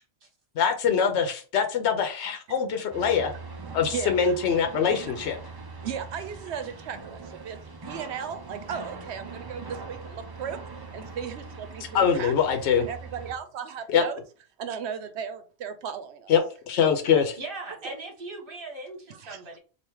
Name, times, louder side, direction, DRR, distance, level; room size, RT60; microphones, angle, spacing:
voice 1, 0.6-3.3 3.7-5.4 11.9-12.8 13.9-14.0 16.3-16.4 16.7-17.4, left 7 dB, 85° left, 0.9 m, -23 dB
sound 1, 2.9-13.4, right 4 dB, 35° right, 0.4 m, -42 dB
voice 2, 3.6-4.4 4.8-4.9 5.8-7.6 7.8-12.3 12.8-14.2 14.6-16.4 17.8-17.9 19.1-19.4, right 7 dB, 80° right, 0.9 m, -36 dB
voice 3, 17.4-19.6, right 2 dB, 55° right, 1.3 m, -39 dB
3.3 x 2.5 x 4.5 m
omnidirectional pair, 1.1 m